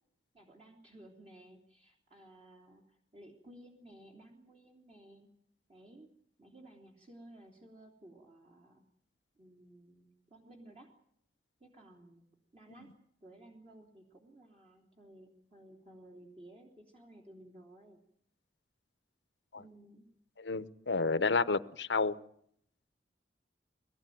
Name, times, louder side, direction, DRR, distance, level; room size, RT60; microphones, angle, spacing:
voice 1, 0.3-5.3 5.7-6.1 6.4-8.8 9.4-10.9 11.6-12.3 12.5-12.9 13.2-18.0 19.5-20.1, right 1 dB, 35° right, 0 dB, 3.2 m, -56 dB
voice 2, 20.4-22.2, left 4 dB, 85° left, 14 dB, 1.0 m, -30 dB
22.5 x 17.5 x 9.3 m, 0.68 s
head